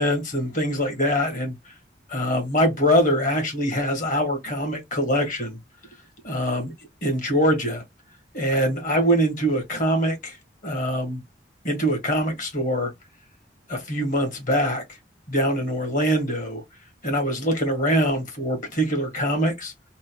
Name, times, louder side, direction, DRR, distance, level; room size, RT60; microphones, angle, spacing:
voice 1, 0.0-1.5 2.1-5.6 6.2-6.7 7.0-7.8 8.3-10.4 10.6-11.2 11.6-12.9 13.7-14.8 15.3-16.6 17.0-19.7, equal, 50° left, 1.4 m, -23 dB
4.0 x 2.3 x 2.2 m
head